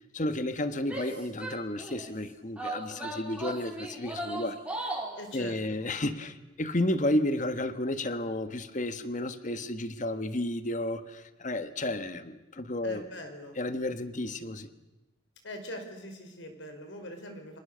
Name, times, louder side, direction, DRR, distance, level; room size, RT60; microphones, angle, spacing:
voice 1, 0.0-4.9 5.3-13.0 13.6-14.7, left 1 dB, 40° left, 1.4 m, -32 dB
Female speech woman speaking / Yell, 0.8-2.1 2.6-5.2, right 1 dB, 5° right, 4.1 m, -37 dB
voice 2, 5.2-5.6 12.8-13.6 15.4-17.6, left 1 dB, 75° left, 5.1 m, -42 dB
29.5 x 25.5 x 6.8 m
head